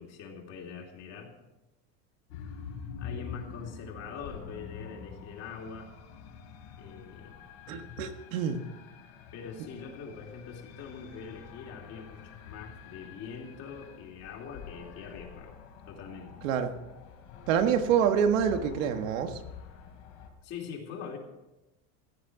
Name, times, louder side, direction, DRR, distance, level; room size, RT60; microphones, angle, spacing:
voice 1, 0.0-1.3 3.0-5.9 6.8-7.4 9.3-15.5 15.9-16.3 20.4-21.2, left 6 dB, 40° left, 1 dB, 2.8 m, -43 dB
sound 1, 2.3-20.3, left 7 dB, 70° left, 3.3 m, -46 dB
voice 2, 7.7-8.6 16.4-16.7 17.5-19.4, right 8 dB, 90° right, 7 dB, 1.6 m, -26 dB
16.0 x 10.5 x 5.0 m, 0.99 s
cardioid pair, 150°, 38 cm